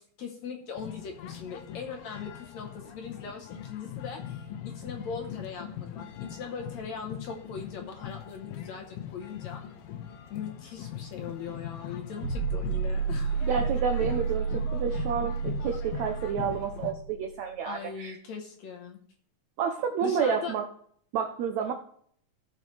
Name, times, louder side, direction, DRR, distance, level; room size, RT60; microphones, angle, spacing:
voice 1, 0.2-9.6 10.3-13.4 17.6-19.0 20.0-20.5, left 6 dB, 65° left, 3 dB, 1.9 m, -40 dB
sound 1, 0.8-16.9, left 9 dB, 85° left, 2.6 m, -41 dB
sound 2, 12.2-17.3, right 6 dB, 60° right, 3.1 m, -31 dB
voice 2, 13.4-18.1 19.6-20.6 21.1-21.7, right 7 dB, 85° right, 5 dB, 1.6 m, -30 dB
17.0 x 6.7 x 3.3 m, 0.62 s
omnidirectional pair, 4.3 m